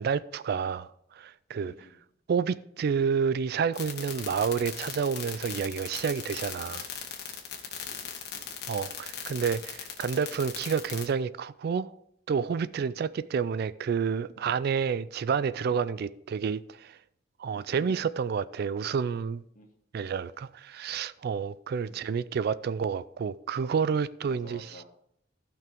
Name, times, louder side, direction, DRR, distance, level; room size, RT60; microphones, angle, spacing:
voice 1, 0.0-1.7 2.3-6.9 8.7-12.0 12.3-17.0 17.4-19.4 19.9-24.7, right 6 dB, 55° right, 0.3 m, -29 dB
voice 2, 1.6-2.0 7.7-8.6 12.8-13.0 17.5-17.9 19.6-19.7 20.0-20.3 21.8-22.1 24.3-24.8, left 1 dB, 45° left, 1.9 m, -52 dB
sound 1, 3.7-11.1, left 8 dB, 60° left, 1.7 m, -38 dB
15.5 x 5.9 x 3.5 m
head